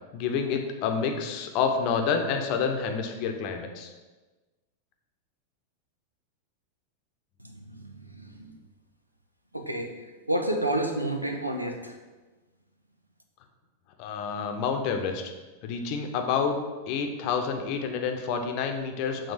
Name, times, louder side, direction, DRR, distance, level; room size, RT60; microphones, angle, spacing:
voice 1, 0.1-3.9 14.0-15.2 15.6-16.6 16.9-19.3, left 6 dB, 45° left, 5 dB, 0.8 m, -28 dB
voice 2, 7.4-8.5 9.5-12.0, right 1 dB, 85° right, 4 dB, 0.7 m, -30 dB
7.1 x 3.7 x 5.1 m, 1.2 s
figure-of-eight pair, 90°, 0 cm